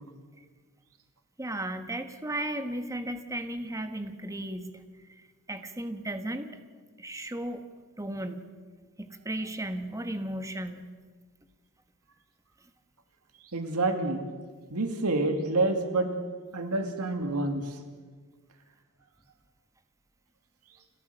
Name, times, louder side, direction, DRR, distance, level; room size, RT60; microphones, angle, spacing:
voice 1, 1.4-4.7 5.1-6.5 7.0-7.6 8.0-8.4 9.0-10.9, right 1 dB, 15° right, 8 dB, 1.3 m, -35 dB
voice 2, 13.5-14.3 14.7-16.1 16.5-17.8, right 2 dB, 85° right, 6 dB, 2.2 m, -28 dB
29.0 x 13.5 x 6.8 m, 1.5 s
head